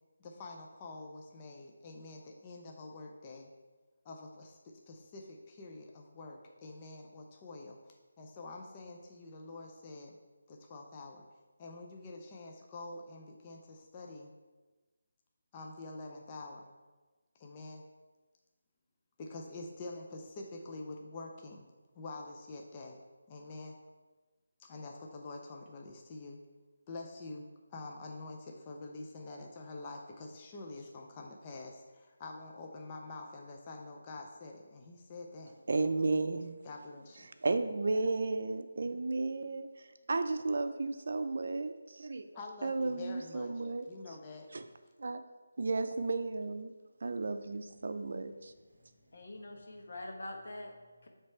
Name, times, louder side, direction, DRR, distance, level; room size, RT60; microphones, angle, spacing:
voice 1, 0.2-3.5 4.0-10.2 10.5-11.3 11.6-14.3 15.5-16.7 17.3-17.8 19.2-21.7 21.9-23.0 23.3-23.7 24.6-26.4 26.9-35.6 36.6-37.3 42.3-44.5, left 2 dB, 20° left, 1 dB, 0.5 m, -46 dB
voice 2, 35.7-36.6 37.4-39.7 40.1-42.3 42.6-43.9 44.5-44.7 45.0-45.2 45.6-46.7 47.0-48.5, right 3 dB, 60° right, 9 dB, 0.5 m, -33 dB
voice 3, 48.7-51.1, left 1 dB, 60° left, 1 dB, 1.2 m, -45 dB
7.5 x 3.3 x 4.4 m, 1.3 s
figure-of-eight pair, 170°, 0 cm